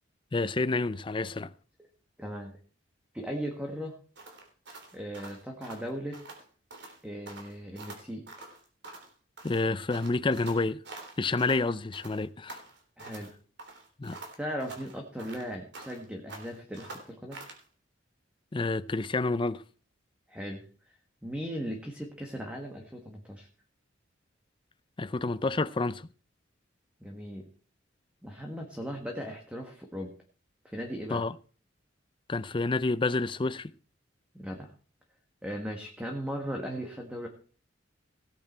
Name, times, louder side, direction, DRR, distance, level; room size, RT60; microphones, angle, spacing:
voice 1, 0.3-1.5 9.4-10.8 11.2-12.6 14.0-14.2 18.5-19.6 25.0-26.1 31.1-31.4 32.3-33.7, left 3 dB, 25° left, 0.5 m, -29 dB
voice 2, 2.2-2.5 3.1-4.0 4.9-6.2 7.0-8.2 13.0-13.3 14.4-17.4 20.3-20.6 21.2-23.5 27.0-27.5 28.2-30.1 30.6-31.2 34.3-34.7 35.4-37.3, equal, 5° right, 1.7 m, -37 dB
sound 1, 4.2-6.4 6.7-7.0 7.3-9.1 9.4-11.6 11.9-13.3 13.6-16.0 16.3-17.6, right 2 dB, 65° right, 3.5 m, -46 dB
17.5 x 8.8 x 4.5 m
head